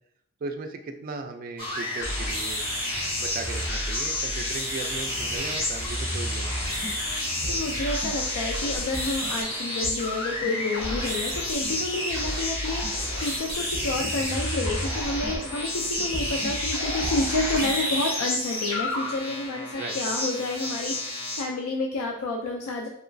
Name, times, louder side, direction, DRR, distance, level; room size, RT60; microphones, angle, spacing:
voice 1, 0.4-2.6 3.2-7.0 19.8-20.0, right 3 dB, 40° right, 5 dB, 0.3 m, -37 dB
sound 1, 1.6-21.4, left 1 dB, 25° left, 1.1 m, -30 dB
sound 2, 6.5-18.1, equal, 5° right, 1.2 m, -41 dB
voice 2, 7.4-22.9, left 2 dB, 80° left, 1 dB, 0.4 m, -30 dB
3.0 x 2.9 x 2.6 m, 0.79 s
head